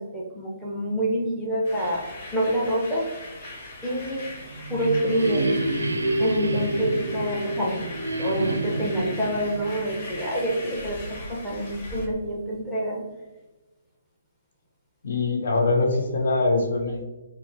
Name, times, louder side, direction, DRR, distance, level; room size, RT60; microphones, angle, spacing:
voice 1, 0.0-2.0 2.3-3.0 3.8-4.2 4.7-5.5 6.2-7.9 8.2-13.0, right 1 dB, 5° left, -6 dB, 0.8 m, -27 dB
sound 1, 1.6-12.1, left 2 dB, 45° left, 0.9 m, -40 dB
sound 2, 4.3-11.0, right 1 dB, 80° right, 0.4 m, -28 dB
voice 2, 15.0-17.0, left 3 dB, 60° left, 2 dB, 0.5 m, -23 dB
4.6 x 2.0 x 2.7 m, 1.2 s
figure-of-eight pair, 130°, 0 cm